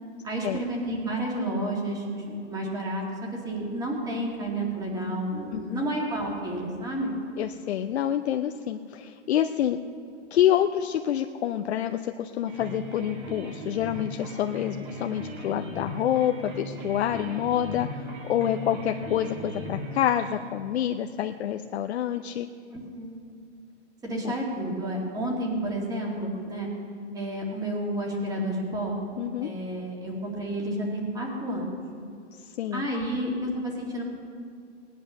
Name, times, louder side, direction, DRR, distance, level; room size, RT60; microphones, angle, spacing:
voice 1, 0.2-3.0 3.4-7.1 22.7-23.2 24.0-26.7 27.1-29.0 29.4-31.7 32.7-34.0, right 1 dB, 10° right, -1 dB, 2.3 m, -30 dB
voice 2, 5.5-5.8 7.4-9.8 10.3-17.9 18.2-22.5 24.2-24.3 29.2-29.5 32.4-32.9, left 11 dB, 60° left, 5 dB, 0.7 m, -27 dB
sound 1, 12.5-20.3, equal, 30° right, 2.1 m, -38 dB
18.5 x 10.0 x 6.5 m, 2.5 s
hypercardioid pair, 155°, 37 cm